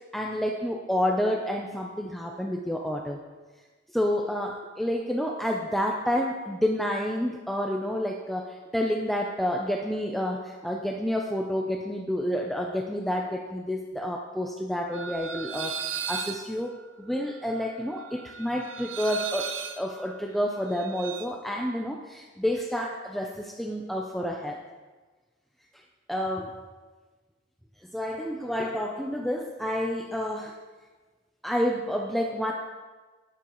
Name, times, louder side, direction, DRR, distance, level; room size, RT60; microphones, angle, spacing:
voice 1, 0.1-3.2 3.9-15.8 16.1-24.6 26.1-26.6 27.9-30.5 31.4-32.5, equal, ahead, 1 dB, 0.5 m, -29 dB
sound 1, 14.9-21.2, right 7 dB, 85° right, 0.8 m, -37 dB
13.0 x 9.6 x 3.0 m, 1.3 s
head